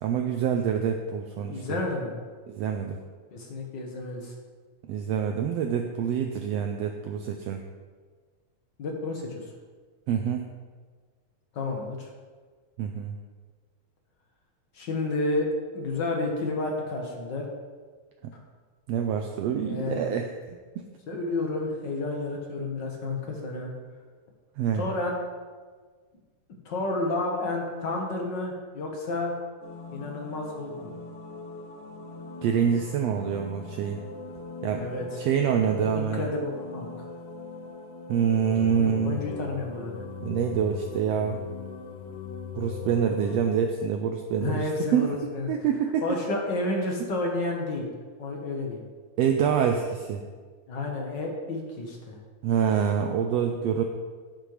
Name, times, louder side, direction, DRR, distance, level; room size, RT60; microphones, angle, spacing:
voice 1, 0.0-1.6 2.5-3.0 4.9-7.6 10.1-10.5 12.8-13.2 18.9-20.9 24.6-24.8 32.4-34.0 34.6-34.8 35.2-36.3 38.1-39.2 40.2-41.4 42.5-45.1 45.5-46.0 49.2-50.2 52.4-53.8, right 7 dB, 85° right, 4 dB, 1.4 m, -26 dB
voice 2, 1.5-2.2 3.3-4.3 8.8-9.4 11.5-12.1 14.7-15.5 15.7-17.5 19.6-20.1 21.1-23.7 24.7-25.1 26.6-29.4 29.9-30.9 34.8-35.2 35.8-36.9 38.7-40.0 44.4-45.5 46.0-47.9 48.2-48.8 50.7-52.2, left 2 dB, 50° left, 0 dB, 1.4 m, -31 dB
sound 1, 29.6-43.5, left 5 dB, 80° left, 2.5 m, -40 dB
10.5 x 9.1 x 3.3 m, 1.5 s
omnidirectional pair, 3.5 m